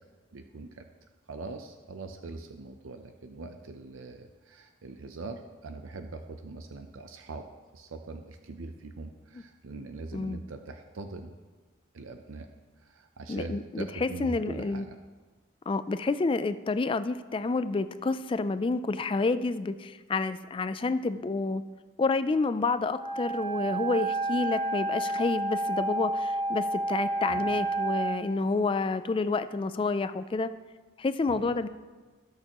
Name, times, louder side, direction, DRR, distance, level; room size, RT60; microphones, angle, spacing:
voice 1, 0.3-0.8 1.3-7.4 7.7-11.3 11.9-12.5 12.8-15.0 27.3-27.6 31.3-31.6, right 3 dB, 80° right, 6 dB, 0.6 m, -42 dB
voice 2, 13.3-14.8 15.7-21.6 22.0-30.5 31.0-31.7, left 3 dB, 25° left, 13 dB, 0.3 m, -29 dB
Wind instrument woodwind instrument, 22.9-28.2, right 2 dB, 20° right, 1.0 m, -30 dB
18.5 x 6.6 x 3.0 m, 1.4 s
head